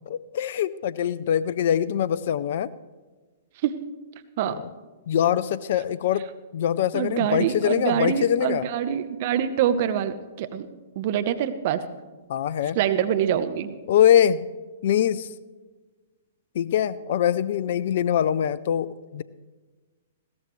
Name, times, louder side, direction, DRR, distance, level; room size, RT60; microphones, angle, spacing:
voice 1, 0.1-2.7 4.4-4.6 5.1-8.7 12.3-12.8 13.9-14.5 14.8-15.3 16.5-19.2, left 10 dB, 55° left, 17 dB, 0.5 m, -23 dB
voice 2, 6.9-10.7 10.9-11.8 12.7-13.7, right 10 dB, 50° right, 11 dB, 1.1 m, -25 dB
20.5 x 17.0 x 3.2 m, 1.3 s
hypercardioid pair, 120°, 0 cm